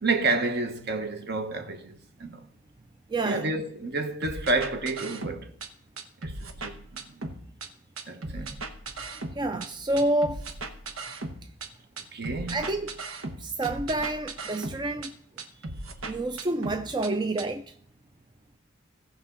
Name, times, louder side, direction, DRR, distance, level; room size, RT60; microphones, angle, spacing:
voice 1, 0.0-2.4 3.2-5.5 6.2-6.3 6.6-7.1 8.1-8.6 12.1-12.6, right 3 dB, 55° right, 1.1 m, -29 dB
voice 2, 3.1-3.5 9.0-10.4 12.5-13.0 13.4-15.1 16.0-17.7, right 2 dB, 20° right, 0.4 m, -29 dB
sound 1, 4.2-5.7 6.0-7.7 8.0-9.7 10.0-11.7 12.0-15.1 15.4-17.1 17.4-17.5, right 2 dB, 85° right, 1.2 m, -37 dB
17.5 x 5.8 x 3.9 m
head